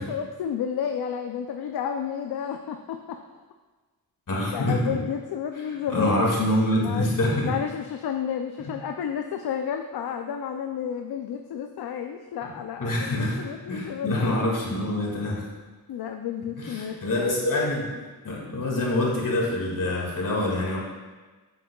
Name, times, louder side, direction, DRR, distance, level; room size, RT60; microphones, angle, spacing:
voice 1, 0.0-3.2 4.5-6.1 6.8-7.1 7.4-13.0 13.4-14.4 15.9-17.4, left 8 dB, 70° left, 5 dB, 0.5 m, -31 dB
voice 2, 4.3-4.8 5.5-7.5 8.6-8.7 12.8-13.4 13.7-15.5 16.6-17.9 18.2-20.8, left 1 dB, 55° left, -3 dB, 2.1 m, -25 dB
7.7 x 7.3 x 2.3 m, 1.3 s
cardioid pair, 80°, 39 cm